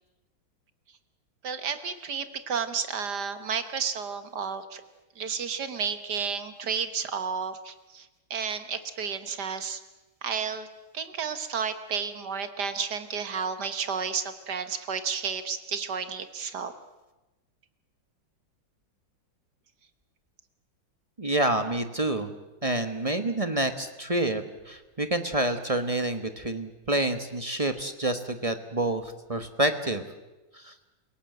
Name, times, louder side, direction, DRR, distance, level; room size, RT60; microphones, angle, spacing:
voice 1, 1.4-4.8 5.2-9.8 10.2-10.7 10.9-16.7, right 6 dB, 55° right, 10 dB, 1.8 m, -32 dB
voice 2, 21.2-22.3 22.6-30.0 30.5-30.7, right 1 dB, 20° right, 8 dB, 1.0 m, -28 dB
29.0 x 17.5 x 7.8 m, 1.1 s
omnidirectional pair, 2.2 m